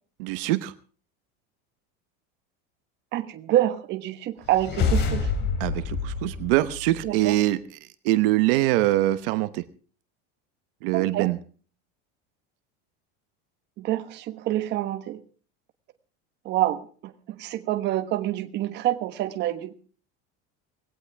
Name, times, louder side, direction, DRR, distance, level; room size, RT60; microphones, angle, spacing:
voice 1, 0.2-0.7 5.6-7.6 8.0-9.6 10.8-11.4, right 17 dB, 65° right, 13 dB, 1.1 m, -23 dB
voice 2, 3.1-5.3 7.0-7.4 10.9-11.3 13.8-15.2 16.4-19.7, right 13 dB, 35° right, 10 dB, 1.2 m, -27 dB
sound 1, 4.4-7.2, left 4 dB, 35° left, 3.1 m, -27 dB
19.0 x 17.5 x 3.5 m, 0.40 s
cardioid pair, 170°, 30 cm